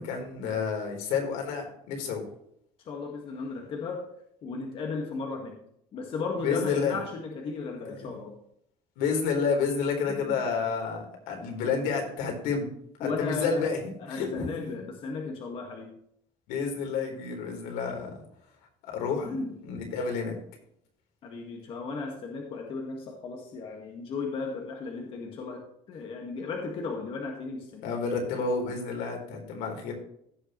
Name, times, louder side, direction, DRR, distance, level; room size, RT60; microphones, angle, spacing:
voice 1, 0.0-2.2 6.4-7.0 7.9-8.1 9.0-12.7 13.0-14.5 16.5-18.1 18.8-19.3 19.6-20.4 27.8-29.9, left 5 dB, 85° left, 2 dB, 4.0 m, -30 dB
voice 2, 2.9-4.1 4.4-5.6 5.9-8.3 10.1-10.4 13.0-16.0 19.3-19.6 21.2-27.9, left 4 dB, 40° left, 1 dB, 1.8 m, -35 dB
16.0 x 6.7 x 3.2 m, 0.70 s
cardioid pair, 170°, 14 cm